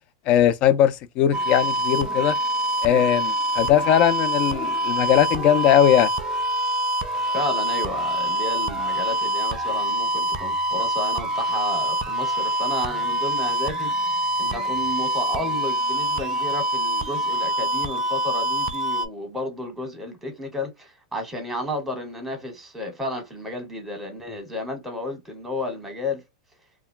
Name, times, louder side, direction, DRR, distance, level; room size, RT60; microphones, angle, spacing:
voice 1, 0.3-2.4 2.8-6.1, left 10 dB, 40° left, 0.4 m, -19 dB
sound 1, 1.3-19.1, equal, 25° right, 0.4 m, -25 dB
voice 2, 7.2-26.2, left 1 dB, 5° right, 1.1 m, -32 dB
2.3 x 2.2 x 3.6 m
hypercardioid pair, 130°, 3 cm